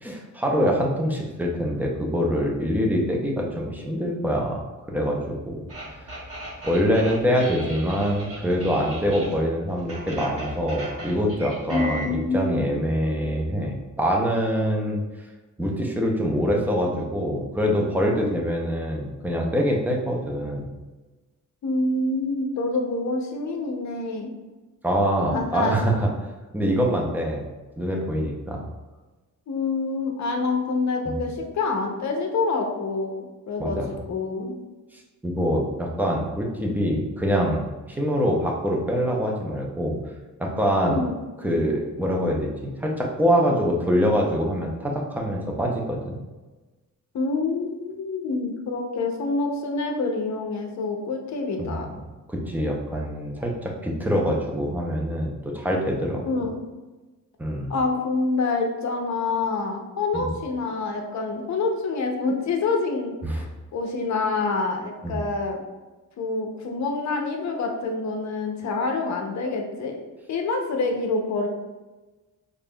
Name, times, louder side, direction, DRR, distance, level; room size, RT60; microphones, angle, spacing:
voice 1, 0.0-4.6 4.9-5.5 6.0-6.1 6.6-15.0 15.6-20.7 24.8-26.1 26.5-27.4 27.8-28.6 31.0-31.2 33.6-33.9 35.2-40.0 40.4-41.0 41.4-46.2 51.6-51.9 52.3-56.4 57.4-57.7 60.1-60.3 63.2-63.4 65.0-65.2, equal, 5° right, -1 dB, 0.5 m, -24 dB
sound 1, 5.7-9.4 9.7-12.1, right 1 dB, 45° right, 1.3 m, -37 dB
voice 2, 11.7-12.7 18.1-18.5 21.6-24.3 25.3-25.8 29.5-34.5 40.8-41.1 47.1-51.9 56.2-56.5 57.7-65.6 66.2-70.0 70.3-71.5, left 3 dB, 55° left, 3 dB, 0.6 m, -27 dB
5.2 x 2.5 x 2.2 m, 1.2 s
wide cardioid pair, 145°, 33 cm